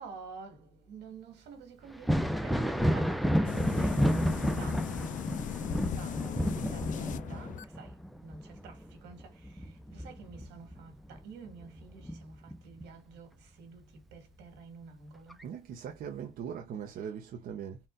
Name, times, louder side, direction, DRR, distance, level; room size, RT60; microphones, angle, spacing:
voice 1, 0.0-15.4 17.0-17.1, right 4 dB, 85° right, 1.9 m, -49 dB
Thunder, 1.9-11.2 11.6-12.8 14.4-14.5 15.3-15.4, equal, ahead, 0.4 m, -31 dB
sound 1, 3.4-7.6, left 9 dB, 50° left, 0.5 m, -37 dB
voice 2, 15.4-17.8, right 8 dB, 60° right, 0.8 m, -40 dB
4.3 x 2.4 x 3.8 m
cardioid pair, 110°, 17 cm